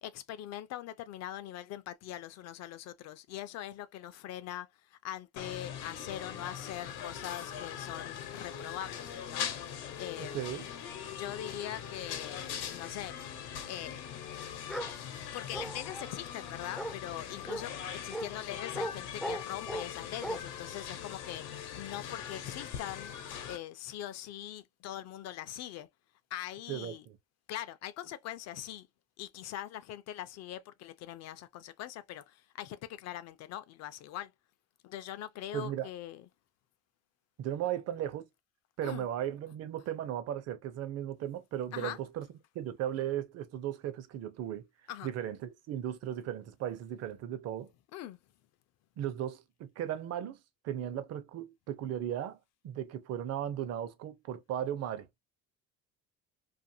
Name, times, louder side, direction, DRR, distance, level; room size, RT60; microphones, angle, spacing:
voice 1, 0.0-9.5 10.0-10.6 11.1-13.2 13.4-14.0 14.3-14.4 14.7-15.0 15.3-17.7 18.0-23.1 23.4-25.9 26.3-27.1 27.5-28.9 29.2-34.3 34.8-36.3 38.8-39.1 41.7-42.0 44.9-45.1 47.9-48.2, left 12 dB, 60° left, 0.5 m, -42 dB
sound 1, 5.4-23.6, left 9 dB, 85° left, 0.9 m, -41 dB
voice 2, 10.2-10.7 26.7-27.2 35.5-35.9 37.4-38.3 38.8-42.3 42.5-44.7 45.0-47.7 49.0-50.4 50.6-52.4 52.6-55.1, right 11 dB, 55° right, 0.6 m, -36 dB
Bark, 14.7-14.9 15.5-16.1 16.8-17.0 17.5-17.6 18.1-18.3 18.7-18.9 19.2-19.9 20.2-20.4, right 1 dB, ahead, 0.3 m, -37 dB
2.6 x 2.5 x 2.6 m
cardioid pair, 120°, 31 cm